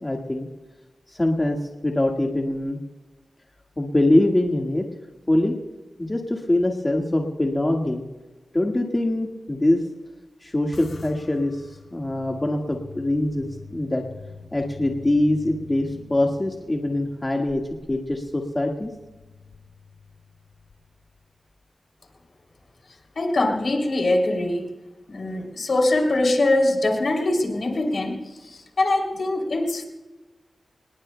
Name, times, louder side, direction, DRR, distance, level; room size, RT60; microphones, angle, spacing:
voice 1, 0.0-0.5 1.1-1.6 1.8-2.8 3.8-4.8 5.3-5.6 6.0-8.0 8.5-9.8 10.4-11.6 11.9-14.0 14.5-17.6 17.9-18.9, left 1 dB, 20° left, 1 dB, 1.7 m, -23 dB
sound 1, 10.7-21.3, left 4 dB, 80° left, 1.4 m, -46 dB
voice 2, 23.1-24.7 25.1-29.8, left 2 dB, 55° left, 3 dB, 3.0 m, -23 dB
26.0 x 20.0 x 2.2 m, 1.2 s
wide cardioid pair, 90°, 0 cm